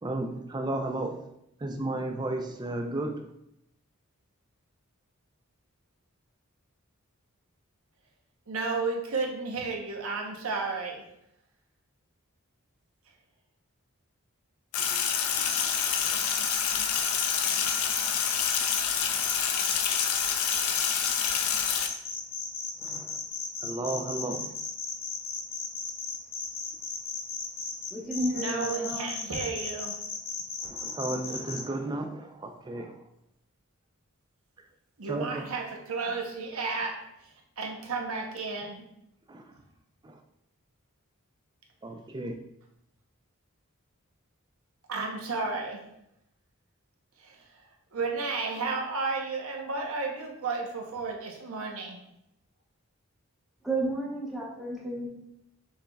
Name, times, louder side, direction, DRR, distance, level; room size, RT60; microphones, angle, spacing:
voice 1, 0.0-1.2 1.6-3.3 22.8-23.2 23.6-24.5 30.6-33.0 35.1-35.4 39.3-39.5 40.0-40.2 41.8-42.4, right 2 dB, 20° right, 5 dB, 0.3 m, -33 dB
voice 2, 8.5-11.1 28.3-30.0 35.0-38.8 44.9-45.9 47.2-52.0, right 4 dB, 80° right, 1 dB, 0.8 m, -33 dB
Sink (filling or washing), 14.7-21.9, left 7 dB, 85° left, 0.5 m, -27 dB
sound 1, 15.5-18.8 19.2-31.6, left 5 dB, 40° left, 0.6 m, -35 dB
voice 3, 27.9-29.1 53.6-55.1, right 1 dB, ahead, -5 dB, 0.8 m, -32 dB
6.2 x 3.3 x 2.2 m, 0.79 s
head